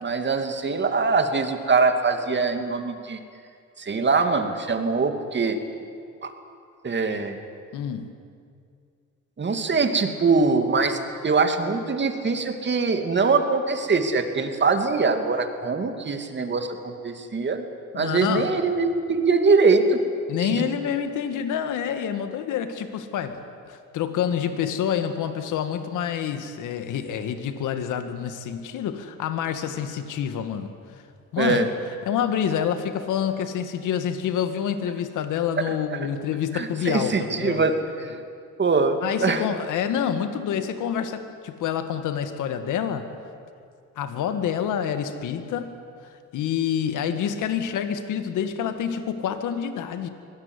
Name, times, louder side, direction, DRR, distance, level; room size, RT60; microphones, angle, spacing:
voice 1, 0.0-3.2 3.8-5.6 6.2-6.3 6.8-7.4 9.4-17.6 17.9-20.0 20.4-20.7 31.4-31.7 35.9-36.1 36.5-37.8 38.0-38.1 38.6-39.4, right 4 dB, 35° right, 6 dB, 2.7 m, -23 dB
voice 2, 7.7-8.1 17.9-18.5 20.3-23.4 23.7-30.7 31.3-31.7 32.1-37.7 39.0-43.1 44.0-45.8 46.3-50.1, left 8 dB, 85° left, 9 dB, 1.9 m, -27 dB
24.0 x 18.0 x 9.8 m, 2.3 s
cardioid pair, 90°, 30 cm